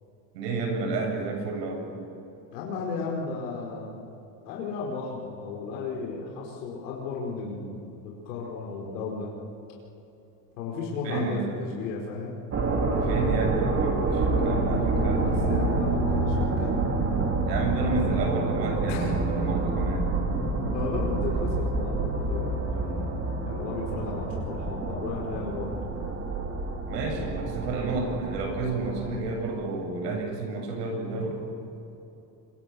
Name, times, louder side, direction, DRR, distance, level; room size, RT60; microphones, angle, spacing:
voice 1, 0.3-1.9 11.0-11.5 12.9-15.8 17.5-20.1 26.9-31.4, right 3 dB, 85° right, 3 dB, 8.0 m, -30 dB
voice 2, 2.5-4.1 4.4-9.3 10.6-12.4 15.2-16.8 18.9-19.1 20.6-25.8, left 4 dB, 85° left, -2 dB, 5.1 m, -34 dB
sound 1, 12.5-29.1, right 3 dB, 30° right, 4.3 m, -27 dB
27.0 x 24.5 x 7.2 m, 2.9 s
supercardioid pair, 135°, 48 cm